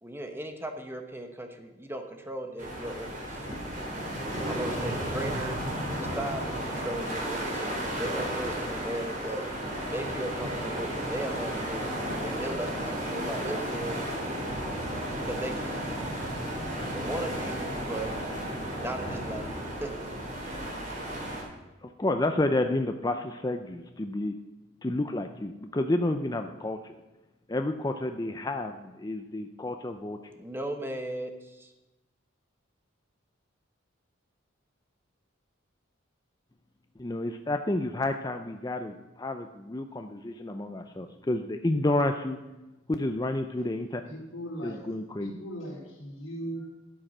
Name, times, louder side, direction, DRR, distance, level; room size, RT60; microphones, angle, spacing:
voice 1, 0.0-3.5 4.3-5.6 5.9-9.4 9.9-14.1 15.2-16.1 16.9-18.1 18.8-19.5 19.8-20.1 30.4-31.7, right 1 dB, 10° right, 5 dB, 1.1 m, -37 dB
sound 1, 2.6-21.4, right 1 dB, 40° right, 3.7 m, -33 dB
voice 2, 21.8-24.3 24.8-26.9 27.5-30.2 37.0-42.4 42.9-44.0 44.6-45.3, left 2 dB, 20° left, 6 dB, 0.5 m, -30 dB
voice 3, 44.0-44.9 45.2-46.7, right 1 dB, 75° left, -3 dB, 4.0 m, -38 dB
12.5 x 7.8 x 6.1 m, 1.0 s
head